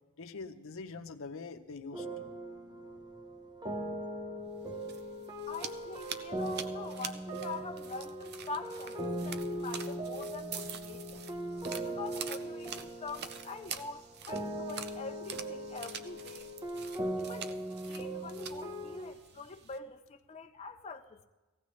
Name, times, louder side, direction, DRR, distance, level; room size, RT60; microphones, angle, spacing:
voice 1, 0.2-2.3, left 4 dB, 65° left, 0.7 m, -44 dB
sound 1, 1.9-19.1, right 1 dB, 20° right, 1.0 m, -39 dB
sound 2, 4.6-19.8, right 7 dB, 50° right, 0.6 m, -46 dB
voice 2, 5.5-11.2 11.8-16.5 17.2-17.6 17.9-21.3, left 4 dB, 30° left, 0.5 m, -44 dB
19.0 x 15.5 x 3.2 m
head